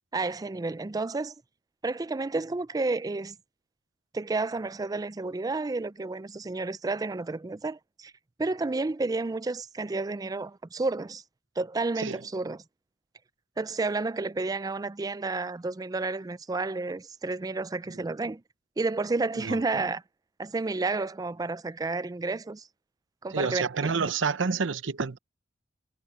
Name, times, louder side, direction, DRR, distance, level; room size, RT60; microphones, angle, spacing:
voice 1, 0.1-1.3 1.8-3.4 4.1-8.1 8.4-11.2 11.6-12.6 13.6-18.4 18.8-20.0 20.4-22.7 23.2-23.6, right 3 dB, 20° right, 0.4 m, -31 dB
voice 2, 23.3-25.2, right 5 dB, 85° right, 0.8 m, -28 dB
head